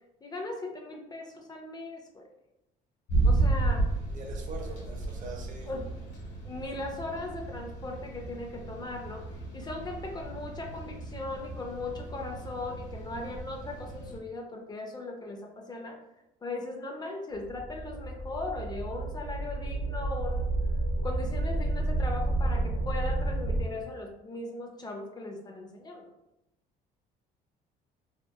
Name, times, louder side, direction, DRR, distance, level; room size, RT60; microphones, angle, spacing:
voice 1, 0.2-2.3 3.2-3.9 5.7-5.9 6.4-9.2 9.5-16.0 16.4-20.5 21.0-26.0, left 2 dB, 25° left, 2 dB, 0.4 m, -38 dB
sound 1, 3.1-14.2, right 3 dB, 85° left, 1.3 m, -33 dB
voice 2, 4.1-5.7, right 3 dB, 50° right, 2 dB, 0.6 m, -43 dB
sound 2, 17.4-23.6, right 2 dB, 60° left, 1.0 m, -30 dB
2.8 x 2.4 x 2.3 m, 0.88 s
cardioid pair, 110°, 17 cm